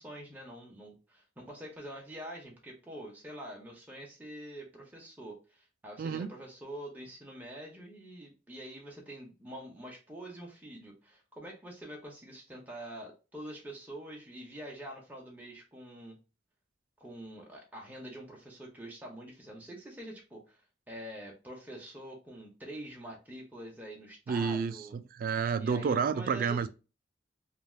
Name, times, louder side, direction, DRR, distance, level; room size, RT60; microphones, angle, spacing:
voice 1, 0.0-16.2 17.0-20.6 20.9-25.0 25.6-26.7, right 1 dB, 10° right, 0.7 m, -45 dB
voice 2, 6.0-6.3 24.3-26.7, right 6 dB, 50° right, 0.3 m, -30 dB
3.3 x 2.4 x 2.3 m
head